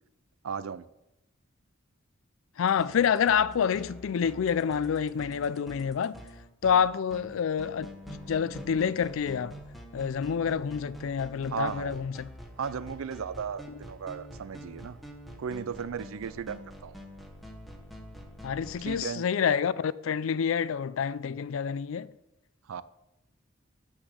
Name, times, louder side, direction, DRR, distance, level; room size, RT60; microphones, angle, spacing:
voice 1, 0.4-0.8 11.5-12.1 12.6-15.0 15.4-16.9 18.8-19.2 22.7-22.8, right 6 dB, 85° right, 0.4 m, -35 dB
voice 2, 2.6-6.2 6.6-9.6 9.9-12.3 18.4-22.1, left 7 dB, 70° left, 0.4 m, -28 dB
sound 1, 2.7-19.0, equal, ahead, 1.0 m, -46 dB
8.2 x 6.2 x 6.3 m
head